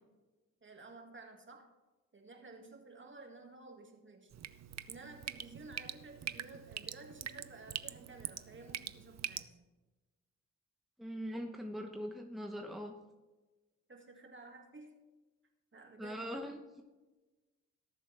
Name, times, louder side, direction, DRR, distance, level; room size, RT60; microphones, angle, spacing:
voice 1, 0.6-1.7 2.1-4.3 4.9-9.6 13.9-15.0 15.7-16.3, right 3 dB, 40° right, 3 dB, 2.3 m, -53 dB
Drip, 4.3-9.4, right 9 dB, 60° right, 0.6 m, -44 dB
voice 2, 11.0-12.9 16.0-16.8, equal, ahead, 2 dB, 1.1 m, -41 dB
18.5 x 7.3 x 3.5 m, 1.2 s
cardioid pair, 60°, 31 cm